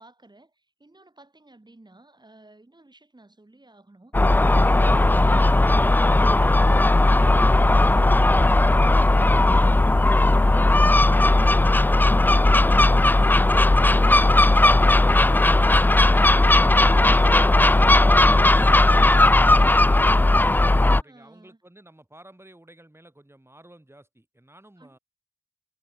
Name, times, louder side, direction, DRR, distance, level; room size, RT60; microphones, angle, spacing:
voice 1, 0.0-7.5 20.7-21.6 24.8-25.0, right 2 dB, 35° right, 6.2 m, -53 dB
Gull seagull, 4.1-21.0, left 2 dB, 15° left, 0.3 m, -17 dB
voice 2, 18.5-25.0, right 1 dB, 20° right, 5.2 m, -52 dB
wide cardioid pair, 75°, 13 cm